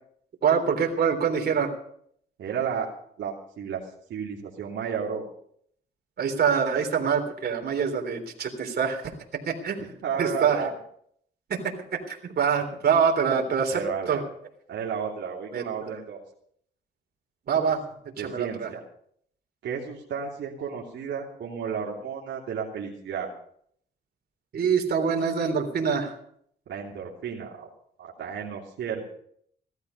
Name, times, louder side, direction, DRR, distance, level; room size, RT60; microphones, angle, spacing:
voice 1, 0.4-1.7 6.2-9.8 10.2-10.7 11.5-14.2 15.5-15.7 17.5-17.8 18.2-18.7 24.5-26.2, right 6 dB, 55° right, 3 dB, 3.5 m, -25 dB
voice 2, 2.4-2.9 3.2-3.8 4.1-5.2 10.0-10.7 13.7-14.2 14.7-16.2 18.2-18.8 19.6-23.3 26.7-27.7 28.0-29.1, right 7 dB, 70° right, -3 dB, 2.9 m, -33 dB
17.0 x 13.0 x 5.3 m, 0.66 s
cardioid pair, 90°, 20 cm